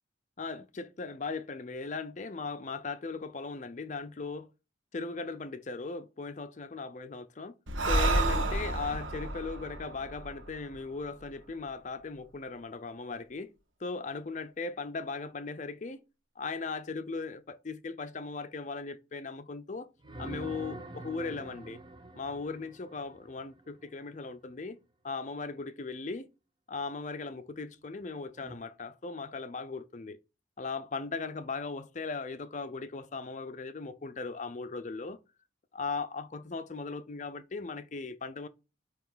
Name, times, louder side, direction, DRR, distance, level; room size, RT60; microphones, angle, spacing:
voice 1, 0.4-4.5 4.9-7.5 7.9-13.5 13.8-16.0 16.4-19.9 20.2-21.8 22.1-24.8 25.0-26.3 26.7-30.2 30.6-35.2 35.7-38.5, left 4 dB, 40° left, 0.5 m, -38 dB
Breathing, 7.7-11.2, right 2 dB, 85° right, 1.3 m, -30 dB
sound 1, 20.0-23.9 28.4-28.5, right 2 dB, 25° right, 0.7 m, -45 dB
9.0 x 3.1 x 3.9 m
head